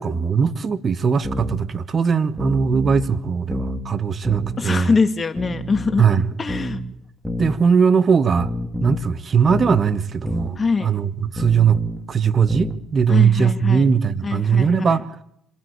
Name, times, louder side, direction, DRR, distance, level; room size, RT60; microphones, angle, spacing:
voice 1, 0.0-4.9 6.0-6.3 7.4-8.5 8.8-15.1, right 6 dB, 45° right, 13 dB, 1.4 m, -19 dB
sound 1, 1.2-1.6 2.4-3.1 3.5-3.8 4.2-4.6 5.4-6.1 6.5-6.8 7.3-7.6 8.4-9.1 9.5-9.8 10.3-10.5 11.4-12.1 12.5-12.8, equal, 5° right, 3.5 m, -28 dB
voice 2, 4.6-6.0 6.4-6.8 10.6-10.9 13.1-13.9 14.2-15.0, left 4 dB, 35° left, 9 dB, 2.2 m, -23 dB
26.0 x 13.5 x 8.4 m, 0.78 s
supercardioid pair, 65°, 0 cm